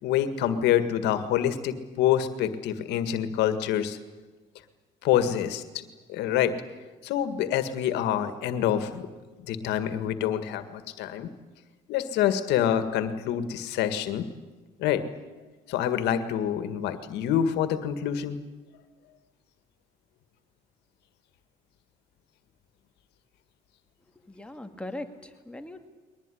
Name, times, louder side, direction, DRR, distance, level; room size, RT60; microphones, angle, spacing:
voice 1, 0.0-4.0 5.0-6.5 7.0-9.1 9.5-11.3 11.9-14.3 14.8-15.0 15.7-18.4, left 10 dB, 85° left, 10 dB, 1.9 m, -26 dB
voice 2, 24.2-25.9, left 1 dB, 5° left, 5 dB, 2.1 m, -40 dB
22.0 x 19.5 x 10.0 m, 1.3 s
cardioid pair, 110°, 17 cm